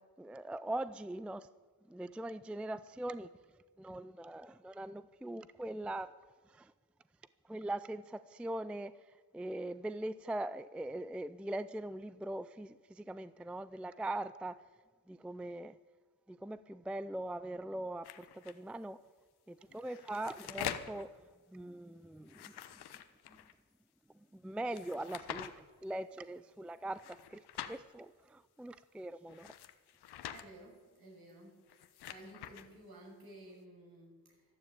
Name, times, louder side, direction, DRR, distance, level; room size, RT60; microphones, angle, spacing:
voice 1, 0.0-1.5 1.9-3.3 3.8-6.1 6.5-6.7 7.5-9.0 9.3-14.6 15.1-15.8 16.3-19.0 19.5-21.1 21.5-22.5 23.3-23.4 24.3-29.5, right 1 dB, 5° right, 0.4 m, -41 dB
sound 1, 18.0-18.5 19.7-21.0 22.2-23.5 24.7-25.5 26.9-27.8 29.3-30.4 31.6-32.7, left 10 dB, 70° left, 1.1 m, -45 dB
voice 2, 30.3-31.6 32.0-34.4, right 1 dB, 60° right, 6.5 m, -54 dB
13.0 x 12.0 x 8.5 m
cardioid pair, 85°, 40 cm